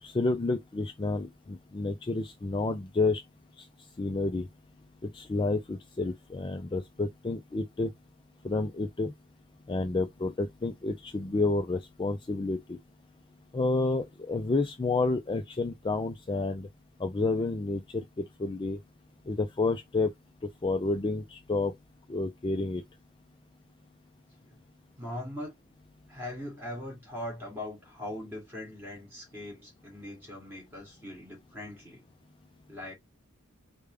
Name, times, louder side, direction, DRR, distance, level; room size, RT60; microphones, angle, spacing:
voice 1, 0.0-3.2 3.6-3.7 4.0-4.5 5.0-7.9 8.4-9.1 9.7-12.8 13.5-16.7 17.0-18.8 19.3-20.1 20.6-21.7 22.1-22.8, left 3 dB, 20° left, 0.3 m, -30 dB
voice 2, 25.0-25.5 26.1-32.0 32.7-32.9, left 1 dB, 10° right, 2.8 m, -40 dB
5.1 x 2.2 x 3.3 m
head